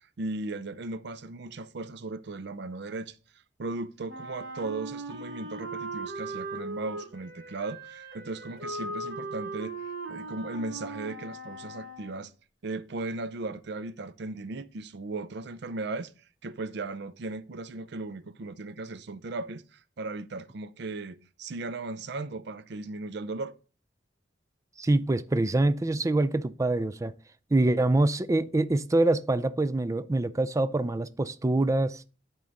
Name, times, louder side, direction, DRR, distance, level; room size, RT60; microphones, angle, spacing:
voice 1, 0.2-3.2 3.6-9.8 10.1-12.3 12.6-16.1 16.4-23.5, right 3 dB, 65° right, 0.5 m, -37 dB
Wind instrument woodwind instrument, 4.1-12.2, right 2 dB, 85° right, 2.1 m, -39 dB
voice 2, 24.8-27.1 27.5-32.0, right 2 dB, 15° right, 0.4 m, -25 dB
10.5 x 3.8 x 4.0 m
head